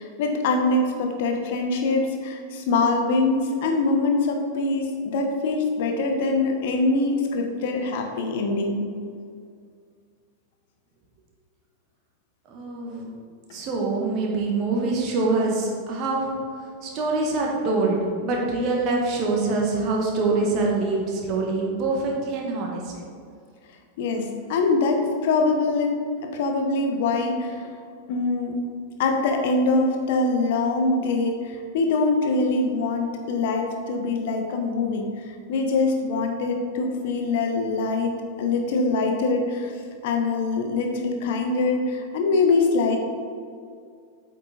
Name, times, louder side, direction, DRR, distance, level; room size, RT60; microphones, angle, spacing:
voice 1, 0.0-8.8 24.0-26.0 26.3-27.6 28.1-28.6 29.0-39.7 40.0-43.0, left 3 dB, 50° left, 3 dB, 1.2 m, -23 dB
voice 2, 12.5-13.1 13.5-16.3 16.8-22.9, right 3 dB, 40° right, -1 dB, 1.6 m, -25 dB
8.4 x 5.9 x 4.2 m, 2.3 s
figure-of-eight pair, 90°, 0 cm